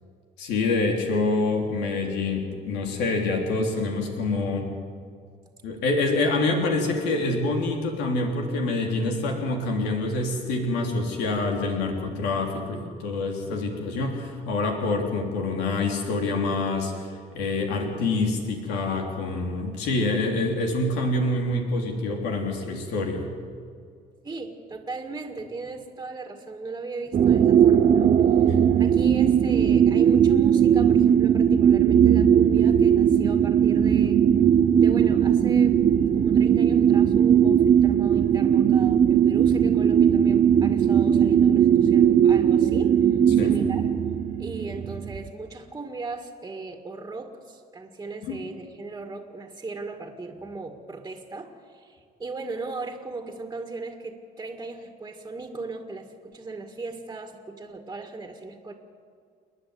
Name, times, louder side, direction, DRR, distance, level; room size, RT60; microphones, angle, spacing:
voice 1, 0.4-4.7 5.6-23.3 28.5-28.6 43.3-43.5 48.3-48.4, left 2 dB, 90° left, 2 dB, 3.3 m, -26 dB
voice 2, 24.2-28.1 28.5-34.2 34.7-35.8 36.1-43.9 44.4-58.7, right 3 dB, 20° right, 4 dB, 2.1 m, -37 dB
sound 1, 27.1-45.3, right 8 dB, 45° right, 0.9 m, -19 dB
29.5 x 10.0 x 9.7 m, 2.2 s
cardioid pair, 110°, 17 cm